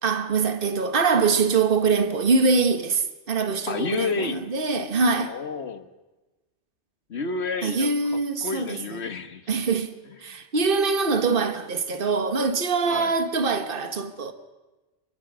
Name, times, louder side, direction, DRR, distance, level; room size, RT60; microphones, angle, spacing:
voice 1, 0.0-5.3 7.6-8.8 9.5-9.9 10.2-14.3, right 4 dB, 50° right, 1.6 m, -23 dB
voice 2, 3.7-4.5 5.3-5.9 7.1-9.5 10.0-10.4 12.8-13.2, left 4 dB, 65° left, 1.7 m, -31 dB
28.5 x 22.0 x 6.3 m
omnidirectional pair, 1.2 m